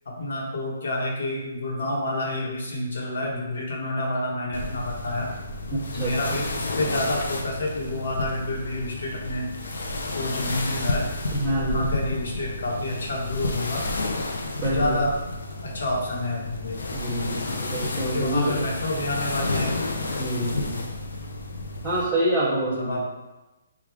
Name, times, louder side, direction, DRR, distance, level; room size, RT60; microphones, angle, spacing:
voice 1, 0.0-5.3 5.9-9.5 10.1-11.1 11.6-13.8 14.7-15.1 15.6-17.6 18.1-19.8 20.3-20.6 22.8-23.0, left 1 dB, 70° left, -2 dB, 1.1 m, -29 dB
sound 1, 4.5-22.1, left 2 dB, 85° left, 0.5 m, -31 dB
voice 2, 5.7-6.1 11.4-11.9 14.6-15.0 16.9-18.7 20.2-20.9 21.8-23.0, right 1 dB, 5° right, -12 dB, 0.7 m, -27 dB
4.7 x 2.4 x 3.4 m, 1.0 s
hypercardioid pair, 170°, 0 cm